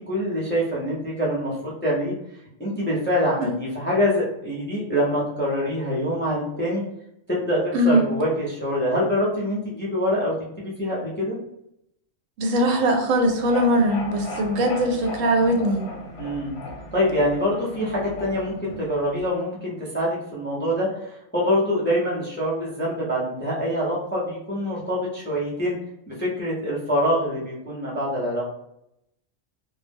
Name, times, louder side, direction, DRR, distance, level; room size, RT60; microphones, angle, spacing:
voice 1, 0.1-2.1 2.6-6.8 7.3-11.3 16.2-16.5 16.9-25.8 26.1-28.5, equal, 15° left, -6 dB, 0.3 m, -25 dB
voice 2, 12.4-15.9, right 1 dB, 85° right, 2 dB, 1.0 m, -21 dB
sound 1, 13.2-19.3, left 1 dB, 65° left, 0.8 m, -37 dB
2.2 x 2.0 x 3.3 m, 0.78 s
omnidirectional pair, 1.3 m